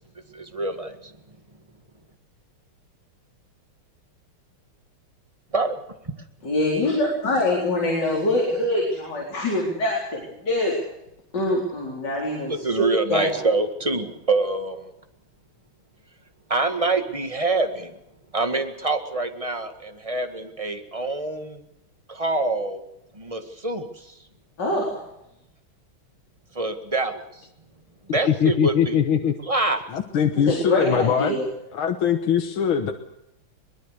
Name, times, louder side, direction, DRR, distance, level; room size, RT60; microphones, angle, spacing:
voice 1, 0.3-1.1 5.5-5.8 12.5-14.9 16.5-18.0 18.3-21.6 22.1-22.8 23.1-24.2 26.5-27.5 28.1-29.0 29.4-29.8, right 2 dB, 15° right, 7 dB, 1.8 m, -26 dB
voice 2, 6.4-10.8 11.3-13.3 24.6-25.0 30.5-31.5, left 1 dB, 50° left, -2 dB, 5.0 m, -24 dB
voice 3, 28.1-29.3 29.9-31.4 31.7-32.9, left 8 dB, 75° left, 5 dB, 2.1 m, -22 dB
22.5 x 21.0 x 6.7 m, 0.82 s
omnidirectional pair, 2.3 m